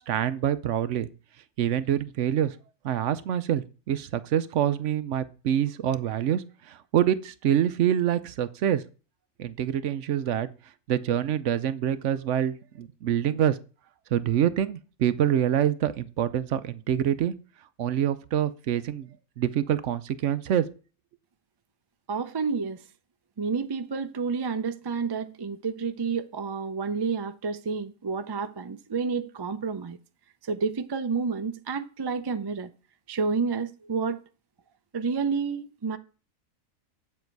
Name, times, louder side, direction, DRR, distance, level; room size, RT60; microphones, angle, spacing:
voice 1, 0.1-1.1 1.6-2.6 2.8-8.8 9.4-10.5 10.9-13.6 14.1-17.3 17.8-20.6, right 10 dB, 70° right, 0.9 m, -26 dB
voice 2, 22.1-22.8 23.4-30.0 30.5-32.7 33.1-34.2 34.9-36.0, right 5 dB, 40° right, 0.3 m, -29 dB
8.0 x 7.6 x 4.6 m
omnidirectional pair, 1.4 m